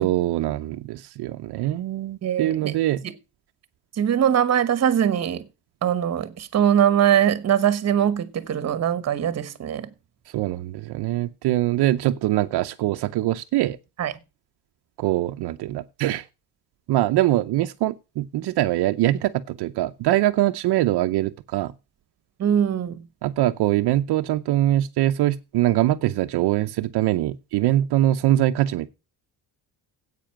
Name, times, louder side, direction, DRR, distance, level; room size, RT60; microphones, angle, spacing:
voice 1, 0.0-3.0 10.3-13.8 15.0-16.2 16.9-21.7 23.2-28.9, right 14 dB, 70° right, 0.7 m, -23 dB
voice 2, 2.2-2.8 3.0-3.1 3.9-5.5 5.8-9.9 14.0-14.1 22.4-23.1, right 9 dB, 40° right, 1.2 m, -22 dB
10.0 x 8.4 x 5.9 m
cardioid pair, 160°, 41 cm